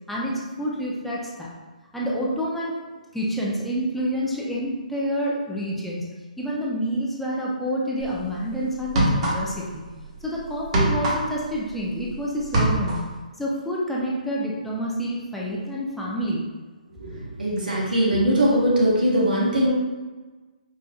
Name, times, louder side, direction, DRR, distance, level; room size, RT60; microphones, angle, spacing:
voice 1, 0.1-1.5 1.9-2.7 3.1-6.1 6.4-9.8 10.2-13.0 13.4-16.4, equal, 5° left, -5 dB, 0.5 m, -28 dB
sound 1, 8.0-8.2 8.8-9.7 10.0-12.1 12.4-13.1, right 1 dB, 45° right, 1.0 m, -23 dB
voice 2, 17.0-19.7, equal, 85° right, -5 dB, 1.4 m, -21 dB
4.9 x 2.5 x 2.3 m, 1.3 s
figure-of-eight pair, 140°, 5 cm